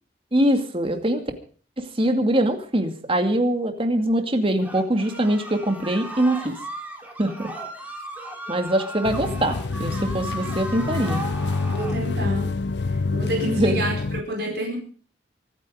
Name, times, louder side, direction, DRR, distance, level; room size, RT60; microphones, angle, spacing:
voice 1, 0.3-1.2 1.8-6.6 7.2-7.5 8.5-11.2 13.5-13.8, right 1 dB, 30° right, 6 dB, 2.3 m, -23 dB
sound 1, 4.6-12.0, right 1 dB, 10° right, 3.4 m, -36 dB
sound 2, 9.0-14.2, left 3 dB, 70° left, 0.7 m, -27 dB
voice 2, 11.7-12.5 12.9-14.8, right 1 dB, 65° right, 0 dB, 4.7 m, -29 dB
24.5 x 9.5 x 5.0 m, 0.43 s
head